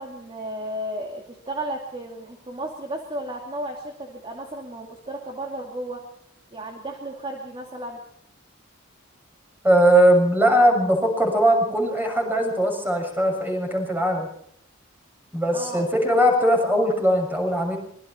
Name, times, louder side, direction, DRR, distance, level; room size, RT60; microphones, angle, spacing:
voice 1, 0.0-6.0 6.5-8.0 15.5-15.9, right 1 dB, 25° right, 1 dB, 2.7 m, -34 dB
voice 2, 9.6-14.3 15.3-17.8, equal, 10° right, 2 dB, 7.0 m, -20 dB
26.0 x 23.0 x 4.5 m, 0.67 s
head